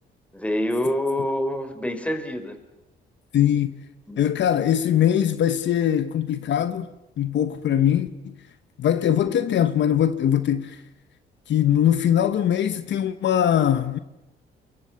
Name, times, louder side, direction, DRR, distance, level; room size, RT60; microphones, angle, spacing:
voice 1, 0.3-2.6 4.1-4.2, left 1 dB, 5° left, 4.1 m, -26 dB
voice 2, 3.3-3.8 4.2-6.9 7.2-8.3 8.8-10.8 11.5-14.0, left 10 dB, 65° left, 1.1 m, -21 dB
29.0 x 23.5 x 7.1 m
cardioid pair, 90°, 20 cm